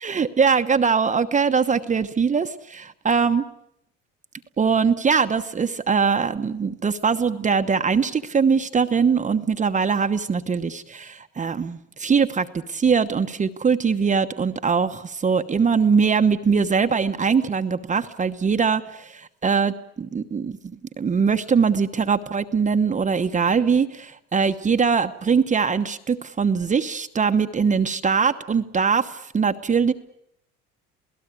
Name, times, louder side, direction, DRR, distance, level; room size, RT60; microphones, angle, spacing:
voice 1, 0.0-3.4 4.6-29.9, right 5 dB, 25° right, 8 dB, 1.1 m, -22 dB
28.0 x 17.5 x 8.4 m, 0.75 s
cardioid pair, 105°, 29 cm